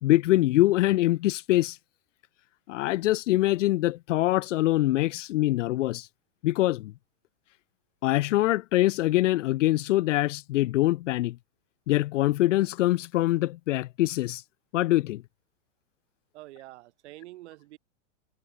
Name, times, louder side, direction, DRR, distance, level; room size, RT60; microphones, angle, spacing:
voice 1, 0.0-1.8 2.7-6.1 6.4-6.9 8.0-11.4 11.9-14.4 14.7-15.2, left 16 dB, 70° left, 0.7 m, -24 dB
voice 2, 16.3-17.8, right 17 dB, 60° right, 7.1 m, -46 dB
hypercardioid pair, 135°, 38 cm